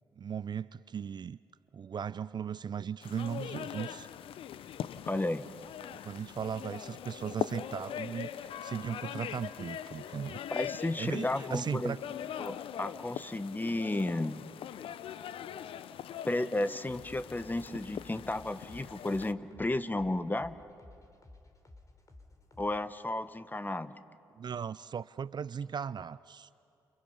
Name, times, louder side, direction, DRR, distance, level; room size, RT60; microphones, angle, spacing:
voice 1, 0.2-1.4 1.7-4.1 5.9-10.4 11.0-12.0 24.4-26.5, right 7 dB, 50° right, 18 dB, 0.5 m, -37 dB
sound 1, 3.0-19.3, left 9 dB, 70° left, 0.7 m, -41 dB
voice 2, 5.1-5.5 10.5-12.0 12.4-14.4 16.2-20.5 22.6-23.9, left 2 dB, 20° left, 13 dB, 1.3 m, -33 dB
sound 2, 13.6-23.2, left 2 dB, 35° left, 3.5 m, -56 dB
29.5 x 29.0 x 5.6 m, 2.6 s
hypercardioid pair, 40°, 10 cm